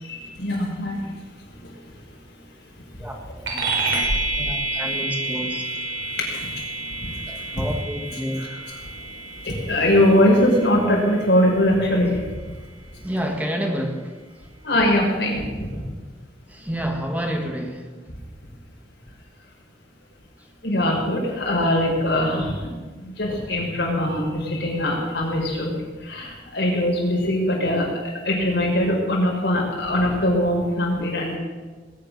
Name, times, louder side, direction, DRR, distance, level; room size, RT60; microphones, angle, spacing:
voice 1, 0.0-1.1 1.6-1.7 6.3-6.6 7.0-7.6 8.4-8.6 9.4-12.2 14.6-15.8 20.6-25.8 26.0-31.4, left 1 dB, 70° left, -2 dB, 6.0 m, -22 dB
sound 1, 3.5-13.3, right 2 dB, 85° right, 4.9 m, -30 dB
voice 2, 4.4-5.6 7.3-8.5 13.0-14.1 16.5-17.9, equal, 10° right, 2 dB, 1.7 m, -29 dB
20.0 x 10.5 x 6.6 m, 1.4 s
head